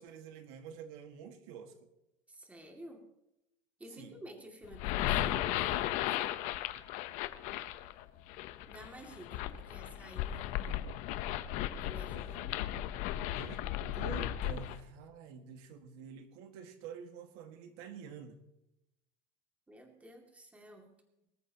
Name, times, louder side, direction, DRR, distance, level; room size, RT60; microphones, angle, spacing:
voice 1, 0.0-1.9 4.0-4.2 13.3-18.4, right 7 dB, 80° right, 6 dB, 1.8 m, -48 dB
voice 2, 2.3-3.0 3.8-6.4 8.7-10.9 11.8-12.7 19.7-20.9, right 1 dB, 10° right, 2 dB, 2.4 m, -52 dB
sound 1, 4.6-14.8, left 13 dB, 65° left, 0.9 m, -36 dB
24.0 x 14.0 x 3.0 m, 0.88 s
cardioid pair, 150°, 14 cm